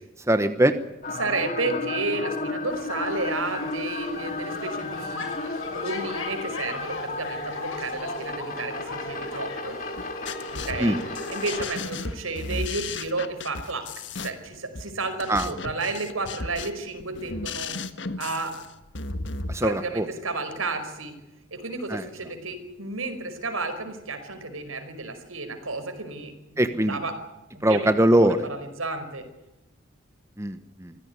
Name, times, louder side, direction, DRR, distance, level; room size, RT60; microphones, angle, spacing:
voice 1, 0.3-0.7 10.8-11.0 15.3-15.5 19.5-20.1 21.9-22.1 26.6-27.0 27.6-28.4 30.4-31.0, right 1 dB, 15° right, 9 dB, 1.1 m, -21 dB
sound 1, 1.0-11.7, left 3 dB, 40° left, 2.9 m, -33 dB
voice 2, 1.2-5.2 5.7-9.8 10.5-11.0 11.3-13.9 14.2-17.8 18.2-18.5 19.6-21.1 21.5-27.1 27.5-29.2, right 3 dB, 85° right, 8 dB, 5.2 m, -32 dB
sound 2, 2.7-12.1, left 4 dB, 80° left, 6.2 m, -41 dB
sound 3, 10.0-19.6, left 3 dB, 60° left, 1.5 m, -35 dB
25.0 x 16.0 x 9.8 m, 0.96 s
head